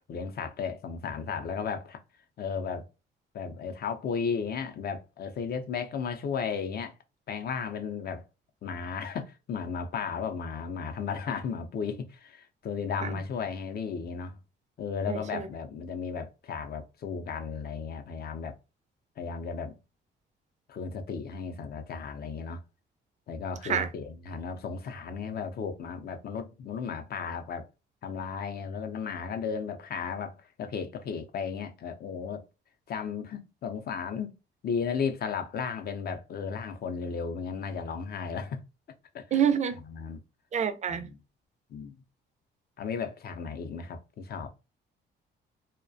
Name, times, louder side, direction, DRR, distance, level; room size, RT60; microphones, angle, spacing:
voice 1, 0.1-2.0 2.4-2.9 3.3-6.9 7.3-8.2 8.6-14.4 14.8-18.6 19.2-19.8 20.7-22.6 23.3-27.7 28.0-32.4 32.9-34.3 34.6-38.6 39.1-39.4 39.9-40.2 40.9-41.2 41.7-41.9 42.8-44.5, left 6 dB, 50° left, 0.5 m, -34 dB
voice 2, 15.1-15.5 23.7-23.9 39.3-39.8 40.5-41.1, right 8 dB, 35° right, 0.4 m, -27 dB
2.3 x 2.1 x 2.5 m
cardioid pair, 90°, 20 cm